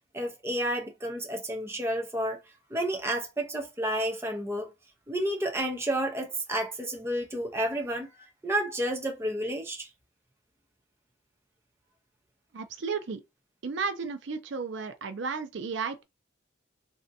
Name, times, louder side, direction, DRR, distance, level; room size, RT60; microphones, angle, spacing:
voice 1, 0.1-2.4 2.7-4.7 5.1-8.1 8.4-9.9, right 1 dB, 15° right, 0.6 m, -30 dB
voice 2, 12.5-13.2 13.6-16.0, right 5 dB, 65° right, 0.5 m, -33 dB
3.3 x 2.7 x 2.5 m
head